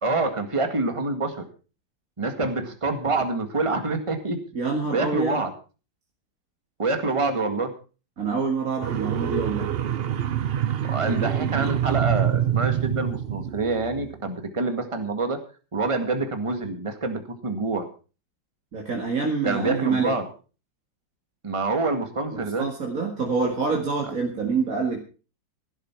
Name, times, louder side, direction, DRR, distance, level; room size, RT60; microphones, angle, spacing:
voice 1, 0.0-1.5 2.2-4.4 4.9-5.5 6.8-7.7 10.8-15.4 15.7-17.9 19.4-20.3 21.4-22.7, right 3 dB, 15° right, 6 dB, 1.8 m, -26 dB
voice 2, 4.5-5.4 8.2-9.7 18.7-20.2 22.3-25.0, right 4 dB, 45° right, 0 dB, 2.4 m, -26 dB
sound 1, 8.8-14.1, right 10 dB, 65° right, 0.6 m, -26 dB
15.5 x 12.5 x 4.6 m, 0.35 s
omnidirectional pair, 2.1 m